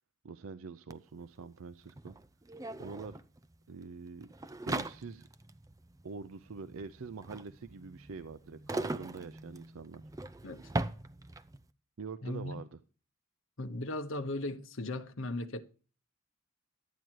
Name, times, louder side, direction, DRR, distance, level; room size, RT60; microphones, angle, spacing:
voice 1, 0.2-2.1 2.8-3.2 3.7-4.3 4.7-5.3 6.0-10.0 12.0-12.8, right 4 dB, 75° right, 0.5 m, -45 dB
sound 1, 0.9-1.0 1.2-11.6, right 2 dB, 15° right, 0.5 m, -40 dB
voice 2, 12.2-12.6 13.6-15.6, left 2 dB, 65° left, 1.0 m, -37 dB
12.0 x 9.3 x 4.6 m
head